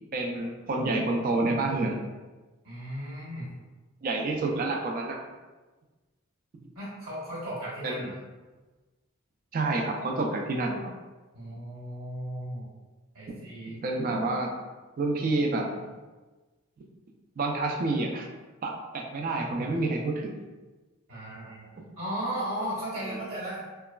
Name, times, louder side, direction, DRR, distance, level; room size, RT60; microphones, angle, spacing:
voice 1, 0.1-2.0 4.0-5.2 7.8-8.1 9.5-10.9 13.3-13.4 13.6-14.5 15.0-15.9 17.4-18.3 18.6-20.4 23.0-23.2, right 2 dB, 40° right, 2 dB, 0.3 m, -28 dB
voice 2, 2.6-3.6 6.7-8.1 11.3-12.7 13.1-13.8 21.1-21.7 22.0-23.7, right 1 dB, 70° right, -8 dB, 1.3 m, -36 dB
2.9 x 2.3 x 2.2 m, 1.2 s
head